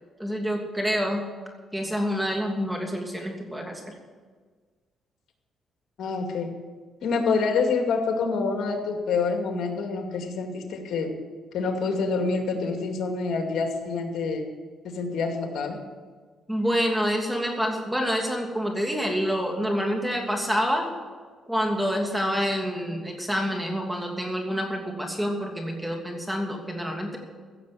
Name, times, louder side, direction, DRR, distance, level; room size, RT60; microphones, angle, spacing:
voice 1, 0.2-1.3 1.7-3.9 16.5-20.9 21.5-27.2, equal, 5° right, 1 dB, 2.8 m, -27 dB
voice 2, 6.0-6.5 7.0-11.1 11.5-14.4 14.8-15.8, left 4 dB, 70° left, 3 dB, 2.4 m, -27 dB
15.5 x 7.4 x 8.4 m, 1.5 s
cardioid pair, 90°, 0 cm